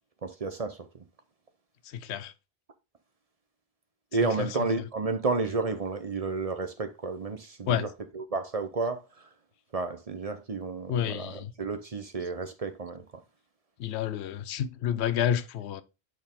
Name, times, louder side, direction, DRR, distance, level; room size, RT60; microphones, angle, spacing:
voice 1, 0.2-0.8 4.1-7.9 8.1-9.0 9.7-13.0, right 3 dB, 40° right, 0.7 m, -31 dB
voice 2, 1.9-2.3 4.4-4.5 7.7-7.9 10.9-11.5 13.8-15.8, left 9 dB, 90° left, 0.9 m, -29 dB
6.4 x 4.3 x 3.6 m
omnidirectional pair, 1.1 m